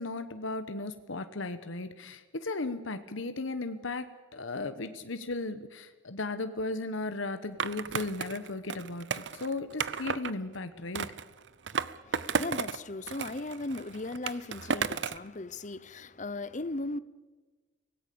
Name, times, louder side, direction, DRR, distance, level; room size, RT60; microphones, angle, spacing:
voice 1, 0.0-11.2, left 2 dB, 80° left, 1.1 m, -36 dB
Skateboard, 7.6-10.3 11.0-12.8 13.1-15.3, right 6 dB, 65° right, 0.7 m, -33 dB
voice 2, 12.0-17.0, left 2 dB, 40° left, 0.8 m, -37 dB
25.0 x 18.0 x 6.9 m
head